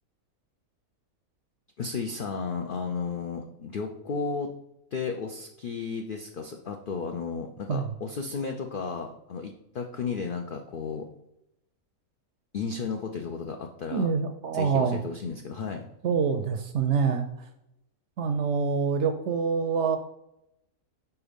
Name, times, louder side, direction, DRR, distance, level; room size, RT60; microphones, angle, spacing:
voice 1, 1.8-4.5 4.9-11.1 12.5-14.1 14.5-15.8, left 5 dB, 85° left, 4 dB, 0.4 m, -33 dB
voice 2, 13.9-15.0 16.0-17.3 18.2-20.0, right 6 dB, 65° right, 7 dB, 0.7 m, -26 dB
4.6 x 4.2 x 5.1 m, 0.83 s
omnidirectional pair, 1.5 m